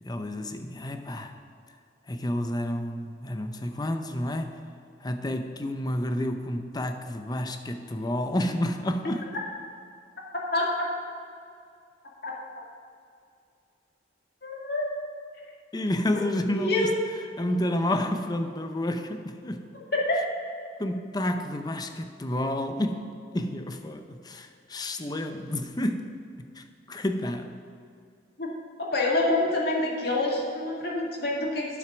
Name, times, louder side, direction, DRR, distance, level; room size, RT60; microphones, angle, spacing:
voice 1, 0.0-1.4 2.1-4.6 5.0-9.2 15.7-17.0 17.4-19.7 20.8-23.0 23.3-26.0 26.5-27.6, left 1 dB, 20° left, 7 dB, 0.6 m, -30 dB
voice 2, 14.4-14.9 16.5-16.9 19.9-20.1 28.4-28.5 28.8-31.7, left 2 dB, 55° left, -3 dB, 2.0 m, -26 dB
9.2 x 7.6 x 6.1 m, 2.4 s
head